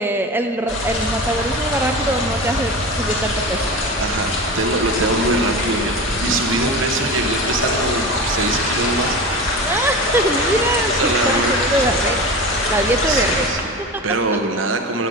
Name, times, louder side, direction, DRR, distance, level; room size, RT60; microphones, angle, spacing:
voice 1, 0.0-3.7 6.5-7.1 9.6-12.2 12.7-13.5 13.8-14.0, right 1 dB, 10° right, 5 dB, 0.4 m, -23 dB
sound 1, 0.7-13.5, left 1 dB, 85° left, 2.2 m, -22 dB
voice 2, 4.0-9.7 10.9-11.9 13.0-13.7 14.0-15.1, right 2 dB, 80° right, 5 dB, 1.0 m, -23 dB
11.5 x 6.5 x 9.5 m, 2.8 s
head